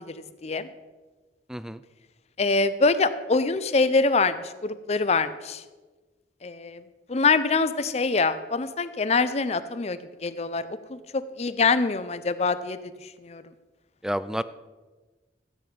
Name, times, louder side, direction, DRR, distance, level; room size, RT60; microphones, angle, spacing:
voice 1, 1.5-1.8 14.0-14.4, equal, 5° right, 15 dB, 0.3 m, -29 dB
voice 2, 2.4-5.6 6.4-6.8 7.1-10.6 10.9-12.8 13.2-13.4, left 4 dB, 40° left, 13 dB, 0.6 m, -24 dB
13.5 x 9.0 x 5.2 m, 1.3 s
head